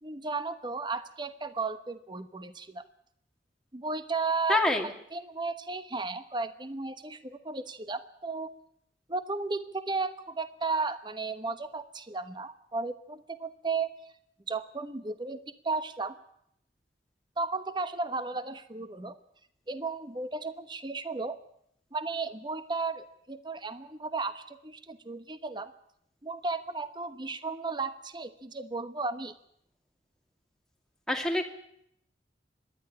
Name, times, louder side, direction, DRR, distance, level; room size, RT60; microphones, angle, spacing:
voice 1, 0.0-2.8 3.7-8.5 9.1-13.9 14.5-16.2 17.4-19.2 19.7-21.4 21.9-25.7 26.2-29.3, right 3 dB, 25° right, 11 dB, 1.1 m, -34 dB
voice 2, 4.5-4.9 31.1-31.5, left 1 dB, 5° left, 2 dB, 2.3 m, -26 dB
25.5 x 11.0 x 9.8 m, 0.72 s
head